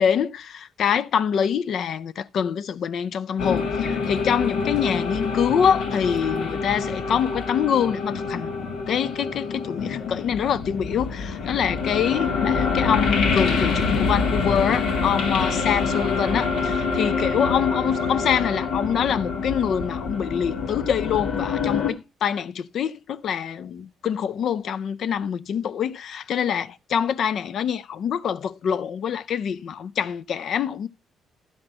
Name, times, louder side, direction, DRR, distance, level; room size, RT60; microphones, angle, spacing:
voice 1, 0.0-30.9, left 8 dB, 65° left, 0.4 m, -25 dB
sound 1, 3.4-21.9, left 5 dB, 85° left, 1.6 m, -26 dB
11.0 x 4.4 x 5.3 m
cardioid pair, 90°, 0 cm